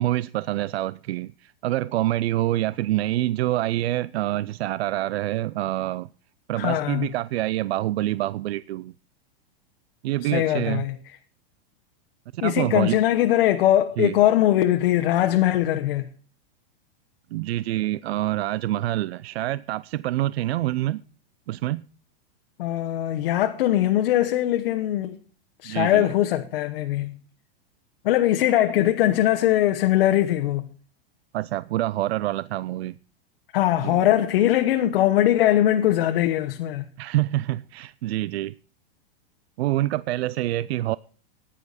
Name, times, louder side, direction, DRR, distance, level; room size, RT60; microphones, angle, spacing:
voice 1, 0.0-6.1 6.5-8.9 10.0-10.8 12.3-13.0 14.0-14.1 17.3-21.0 21.5-21.8 25.6-26.1 31.3-32.9 33.8-34.0 37.0-38.5 39.6-41.0, right 15 dB, 80° right, 0.5 m, -26 dB
voice 2, 6.6-7.1 10.2-10.9 12.4-16.1 22.6-25.2 25.6-27.2 28.0-30.7 33.5-36.9, left 13 dB, 60° left, 1.0 m, -21 dB
14.5 x 10.0 x 4.0 m
supercardioid pair, 150°, 31 cm